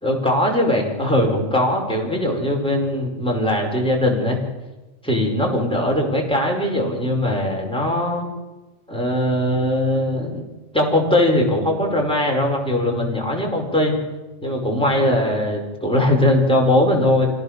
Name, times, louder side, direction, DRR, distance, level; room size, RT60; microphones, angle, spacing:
voice 1, 0.0-4.4 5.0-8.3 8.9-10.4 10.7-14.0 14.4-17.3, left 1 dB, 5° left, -1 dB, 4.9 m, -20 dB
27.0 x 17.5 x 6.7 m, 1.1 s
omnidirectional pair, 1.3 m